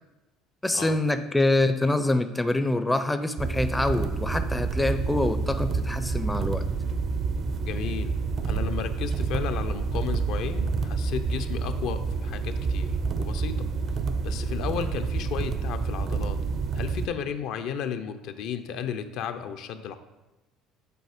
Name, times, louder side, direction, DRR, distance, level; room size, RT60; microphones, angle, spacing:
voice 1, 0.6-6.6, left 2 dB, 10° left, 10 dB, 0.4 m, -25 dB
sound 1, 3.4-17.1, right 4 dB, 45° right, 0.4 m, -28 dB
voice 2, 7.7-8.1 8.4-13.7 14.2-16.4 16.7-20.0, left 8 dB, 70° left, 8 dB, 0.5 m, -33 dB
6.8 x 4.2 x 4.9 m, 1.1 s
supercardioid pair, 105°, 0 cm